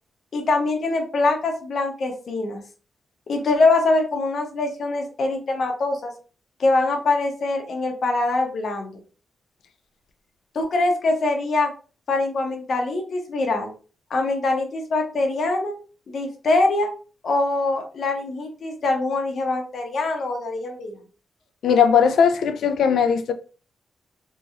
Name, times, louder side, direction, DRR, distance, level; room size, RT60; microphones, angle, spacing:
voice 1, 0.3-2.6 3.3-6.1 6.6-9.0 10.5-11.7 12.1-13.7 14.1-15.7 16.1-16.9 17.2-20.9, left 2 dB, 60° left, 0.8 m, -23 dB
voice 2, 21.6-23.3, left 7 dB, 80° left, 0.4 m, -18 dB
2.9 x 2.7 x 2.5 m
cardioid pair, 100°, 0 cm